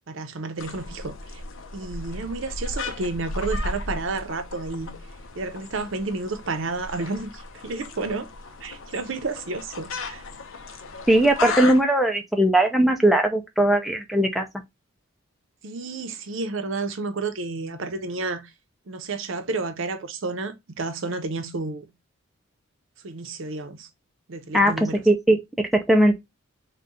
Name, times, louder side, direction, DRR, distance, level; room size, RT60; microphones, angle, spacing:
voice 1, 0.1-1.4 1.7-4.9 5.4-8.3 8.6-10.2 15.6-18.4 18.9-21.9 23.0-23.9 24.3-25.0, right 3 dB, 60° right, 0.6 m, -31 dB
sound 1, 0.6-11.8, left 3 dB, 70° left, 0.6 m, -35 dB
voice 2, 11.1-14.5 24.5-26.2, right 1 dB, ahead, 0.3 m, -19 dB
3.9 x 2.2 x 3.5 m
head